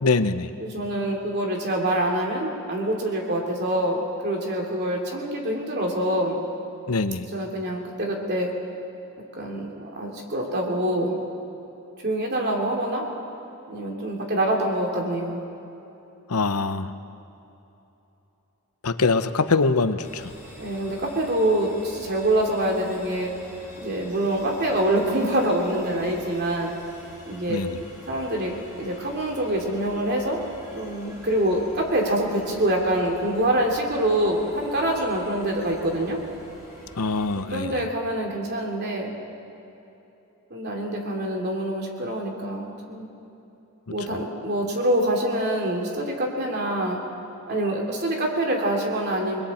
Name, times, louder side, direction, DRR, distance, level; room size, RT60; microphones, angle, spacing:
voice 1, 0.0-0.5 6.9-7.2 16.3-16.9 18.8-20.2 27.5-27.8 37.0-37.7, left 3 dB, 85° left, 11 dB, 0.8 m, -23 dB
voice 2, 0.6-6.4 7.3-8.5 9.4-11.2 12.0-13.0 13.7-15.4 20.6-23.3 23.8-26.7 27.2-27.6 28.1-28.5 28.8-30.4 30.7-36.2 37.5-39.1 40.5-43.1 43.9-47.0 47.5-49.4, right 1 dB, 50° right, 0 dB, 3.0 m, -25 dB
sound 1, 20.0-37.4, equal, 15° right, 5.6 m, -47 dB
29.5 x 21.5 x 4.4 m, 3.0 s
head